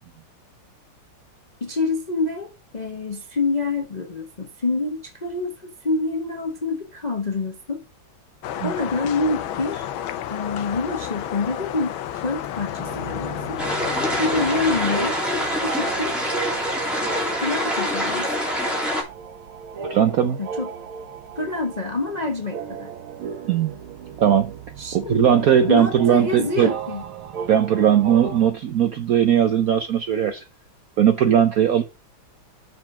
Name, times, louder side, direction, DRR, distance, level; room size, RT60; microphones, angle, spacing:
voice 1, 1.6-7.8 8.6-9.9 10.3-13.6 14.2-15.2 15.6-16.2 17.4-18.3 20.4-20.7 21.3-22.9 24.8-25.4 25.7-27.0, left 3 dB, 40° left, 0.5 m, -27 dB
sound 1, 8.4-15.0, left 11 dB, 75° left, 1.5 m, -31 dB
sound 2, 12.8-28.5, right 6 dB, 90° right, 2.0 m, -36 dB
sound 3, 13.6-19.0, equal, ahead, 2.7 m, -25 dB
voice 2, 19.8-20.4 23.5-23.7 24.2-24.5 24.9-26.7 27.5-30.4 31.0-31.8, right 9 dB, 70° right, 0.8 m, -18 dB
6.4 x 5.2 x 5.8 m
omnidirectional pair, 2.3 m